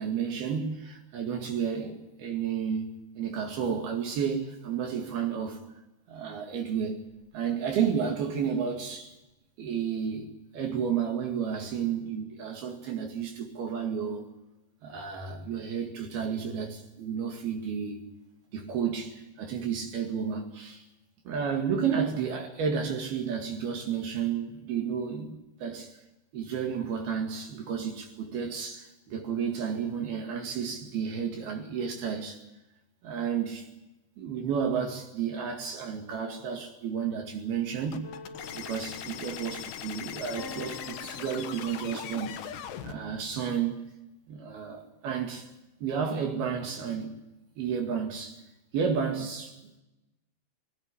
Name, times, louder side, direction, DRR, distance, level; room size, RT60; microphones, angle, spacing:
voice 1, 0.0-5.6 6.1-7.1 7.3-9.1 9.6-14.3 14.8-18.0 18.5-20.8 21.3-25.9 26.3-32.4 33.0-33.7 34.2-38.1 38.5-42.4 42.8-43.9 44.3-45.5 45.8-47.2 47.6-48.4 48.7-49.5, right 7 dB, 70° right, 4.0 m, -32 dB
sound 1, 37.9-43.0, left 10 dB, 85° left, 3.6 m, -40 dB
sound 2, 38.0-39.7 40.4-42.3, left 3 dB, 55° left, 3.5 m, -47 dB
21.0 x 17.0 x 9.8 m
omnidirectional pair, 4.7 m